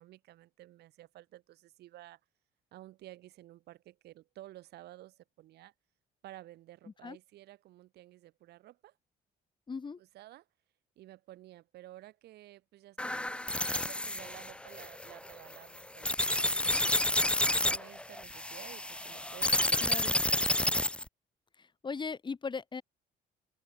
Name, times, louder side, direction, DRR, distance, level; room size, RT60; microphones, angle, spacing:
voice 1, 0.0-2.2 2.7-5.7 6.2-9.0 10.0-10.5 11.0-17.0 17.5-20.2 20.5-20.9, right 15 dB, 75° right, 6.3 m, -53 dB
voice 2, 9.7-10.0 19.8-20.1 21.6-22.8, left 5 dB, 25° left, 4.8 m, -38 dB
sound 1, 13.0-21.1, left 1 dB, 5° left, 1.9 m, -30 dB
open air
cardioid pair, 110°, 17 cm